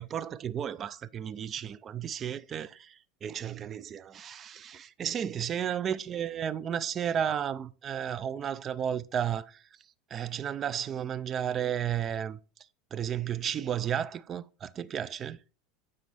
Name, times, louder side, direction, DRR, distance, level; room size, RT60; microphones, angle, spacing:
voice 1, 0.0-9.7 10.1-12.4 12.9-15.4, right 9 dB, 30° right, 0.4 m, -33 dB
9.2 x 3.9 x 3.3 m
supercardioid pair, 130°, 0 cm